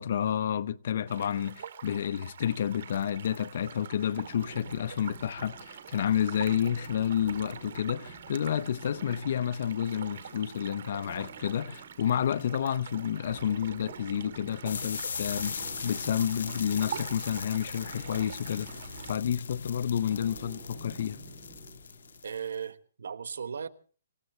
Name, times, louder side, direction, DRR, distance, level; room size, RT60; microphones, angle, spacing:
voice 1, 0.0-18.7 19.1-21.2, left 9 dB, 55° left, 0.8 m, -30 dB
sound 1, 1.1-19.2, right 8 dB, 60° right, 2.2 m, -45 dB
sound 2, 4.2-22.3, right 5 dB, 25° right, 7.7 m, -51 dB
sound 3, 14.7-22.6, left 6 dB, 75° left, 1.1 m, -40 dB
voice 2, 22.2-23.7, right 6 dB, 80° right, 1.3 m, -36 dB
27.0 x 16.0 x 3.2 m
hypercardioid pair, 160°, 0 cm